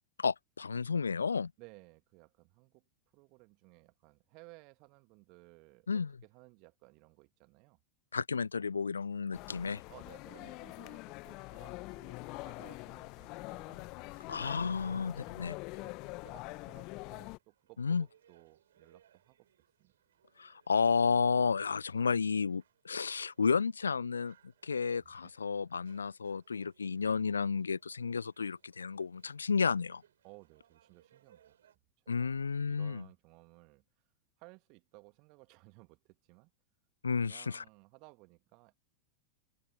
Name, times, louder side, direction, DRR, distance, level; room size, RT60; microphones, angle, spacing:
voice 1, 0.2-1.5 5.9-6.1 8.1-9.8 14.3-15.6 17.8-18.0 20.4-24.3 24.6-30.0 32.1-33.0 37.0-37.6, left 5 dB, 75° left, 0.4 m, -32 dB
voice 2, 1.6-2.8 3.1-5.9 6.2-7.8 9.9-15.0 15.7-19.4 19.8-19.9 25.0-25.3 30.2-31.6 32.2-33.8 34.4-36.5 37.2-38.8, right 29 dB, 45° right, 1.9 m, -59 dB
sound 1, 9.3-17.4, left 25 dB, 40° left, 1.4 m, -45 dB
sound 2, 11.8-31.8, right 10 dB, 65° right, 8.0 m, -70 dB
open air
figure-of-eight pair, 90°, 0 cm